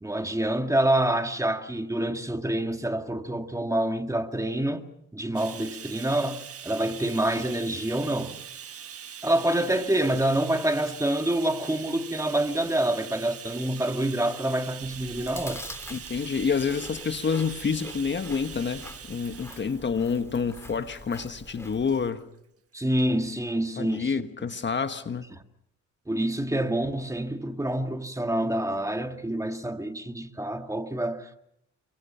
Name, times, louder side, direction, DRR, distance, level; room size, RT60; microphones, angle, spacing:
voice 1, 0.0-4.8 5.1-8.4 9.2-15.6 22.7-24.2 25.3-25.4 26.1-31.4, right 1 dB, 10° right, 1.9 m, -27 dB
Bathtub (filling or washing), 5.3-22.0 22.9-23.1 23.4-23.5, right 8 dB, 50° right, 1.5 m, -43 dB
Chewing mastication, 14.8-22.1, left 1 dB, 10° left, 2.1 m, -45 dB
voice 2, 15.9-22.2 23.8-25.3, left 5 dB, 35° left, 1.4 m, -28 dB
29.5 x 24.5 x 5.8 m
cardioid pair, 90°, 30 cm